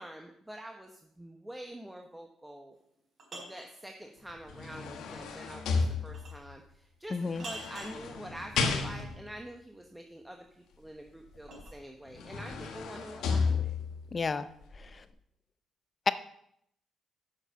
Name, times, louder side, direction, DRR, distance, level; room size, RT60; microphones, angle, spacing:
voice 1, 0.0-2.8 3.3-13.7, right 1 dB, 5° right, 3 dB, 0.9 m, -46 dB
sound 1, 2.7-3.7 6.1-6.5 7.4-8.0 10.3-11.8, right 2 dB, 50° right, 4.5 m, -46 dB
sound 2, 4.3-6.5 7.4-9.3 11.6-11.7 12.1-14.1 14.6-14.8, left 5 dB, 80° left, 1.3 m, -33 dB
voice 2, 7.1-7.4 14.1-14.5, left 4 dB, 35° left, 13 dB, 0.5 m, -31 dB
7.4 x 6.5 x 6.7 m, 0.73 s
cardioid pair, 90°, 0 cm